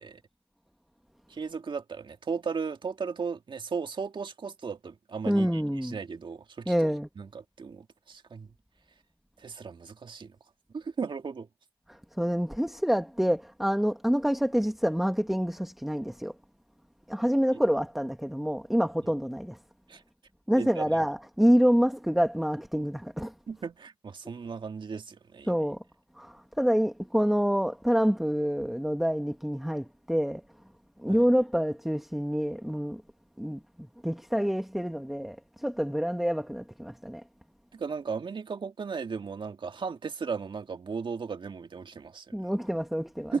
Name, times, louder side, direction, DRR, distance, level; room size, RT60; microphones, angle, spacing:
voice 1, 1.3-6.7 7.2-7.3 7.6-8.5 9.4-10.3 10.7-11.5 19.9-20.0 20.6-20.8 23.5-25.5 31.1-31.2 37.7-42.5 43.3-43.4, right 5 dB, 55° right, 1.9 m, -36 dB
voice 2, 5.2-6.0 6.6-7.1 11.9-16.3 17.1-19.6 20.5-23.3 25.5-25.8 26.1-30.4 31.0-33.0 33.4-37.2 42.3-43.4, equal, ahead, 1.7 m, -27 dB
cardioid pair, 50°, 10 cm